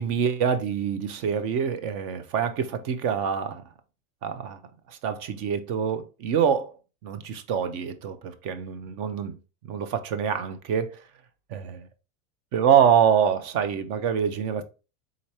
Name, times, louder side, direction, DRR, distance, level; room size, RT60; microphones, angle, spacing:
voice 1, 0.0-3.6 4.2-4.6 4.9-6.8 7.0-9.4 9.6-11.0 11.5-11.9 12.5-14.6, right 8 dB, 55° right, 0.8 m, -25 dB
3.9 x 3.1 x 4.2 m
supercardioid pair, 125°, 41 cm